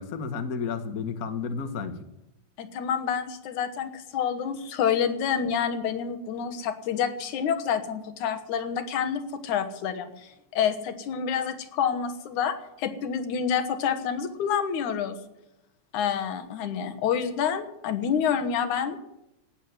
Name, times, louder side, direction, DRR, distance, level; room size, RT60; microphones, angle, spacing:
voice 1, 0.0-2.0, left 5 dB, 50° left, 8 dB, 1.1 m, -32 dB
voice 2, 2.6-15.2 15.9-19.0, left 7 dB, 90° left, 9 dB, 2.7 m, -28 dB
17.5 x 6.9 x 9.5 m, 0.88 s
omnidirectional pair, 3.4 m